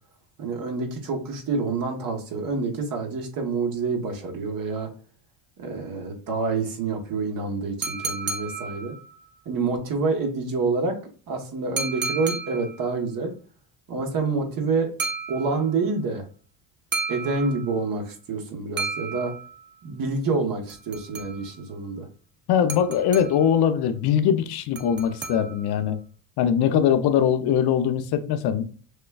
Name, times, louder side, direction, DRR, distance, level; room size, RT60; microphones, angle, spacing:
voice 1, 0.4-4.9 5.6-8.9 9.4-11.0 11.3-13.3 13.9-14.9 15.3-16.2 17.1-19.4 19.8-22.1, right 4 dB, 40° right, 1.2 m, -27 dB
sound 1, 7.8-9.3 11.8-12.9 15.0-15.9 16.9-17.9 18.8-19.8 20.7-21.7 22.7-23.6 24.7-25.8, right 4 dB, 25° right, 0.6 m, -33 dB
voice 2, 22.5-26.0 26.4-28.6, left 8 dB, 50° left, 0.7 m, -21 dB
6.4 x 2.2 x 2.3 m
supercardioid pair, 100°, 49 cm